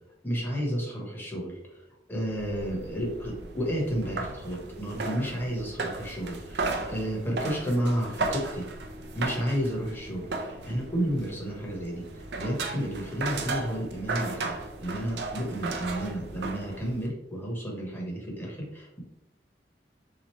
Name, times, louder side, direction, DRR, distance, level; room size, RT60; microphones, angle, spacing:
voice 1, 0.2-1.6 2.1-8.7 9.1-19.0, equal, 10° left, -3 dB, 1.1 m, -31 dB
sound 1, 2.2-17.1, right 3 dB, 65° right, 0.5 m, -35 dB
3.8 x 3.0 x 3.1 m, 0.97 s
head